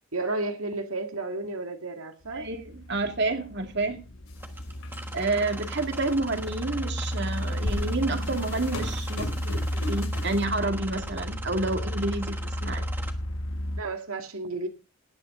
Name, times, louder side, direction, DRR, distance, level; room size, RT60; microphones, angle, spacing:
voice 1, 0.1-2.5 13.8-14.7, right 2 dB, 80° right, 2.1 m, -32 dB
sound 1, 2.2-13.8, equal, 65° left, 1.1 m, -33 dB
voice 2, 2.3-4.0 5.1-12.9, right 2 dB, 55° right, 2.3 m, -29 dB
sound 2, 4.3-4.4 4.8-5.4 6.1-6.2 7.2-10.5, left 1 dB, 80° left, 2.9 m, -36 dB
sound 3, 4.4-13.1, right 2 dB, 10° right, 1.2 m, -42 dB
17.5 x 9.7 x 3.7 m
head